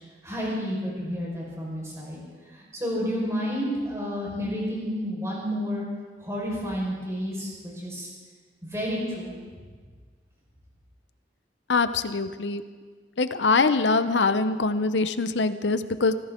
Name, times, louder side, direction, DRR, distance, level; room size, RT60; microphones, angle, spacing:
voice 1, 0.2-2.2 2.5-5.8 6.2-8.1 8.6-9.3, equal, 15° right, -4 dB, 5.1 m, -30 dB
voice 2, 11.7-12.6 13.2-16.1, left 3 dB, 85° left, 11 dB, 0.8 m, -23 dB
25.0 x 15.0 x 3.8 m, 1.5 s
head